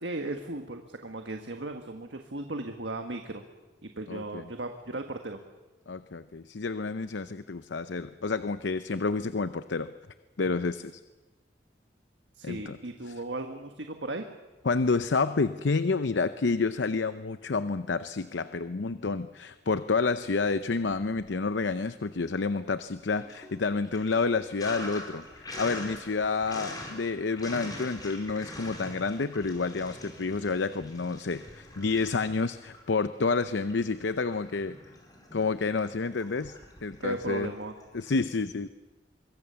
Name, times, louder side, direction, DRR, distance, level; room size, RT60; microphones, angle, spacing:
voice 1, 0.0-3.4 3.8-5.4 12.4-14.2 37.0-37.8, right 2 dB, 75° right, 5 dB, 1.6 m, -36 dB
voice 2, 4.1-4.4 5.9-9.9 10.4-11.0 12.4-12.8 13.1-13.2 14.6-34.8 35.3-37.5 37.9-38.7, left 4 dB, 75° left, 12 dB, 0.7 m, -29 dB
Sink (filling or washing), 21.0-21.7 22.0-38.1, left 1 dB, 20° left, 4.8 m, -44 dB
24.5 x 23.0 x 7.0 m, 1.2 s
head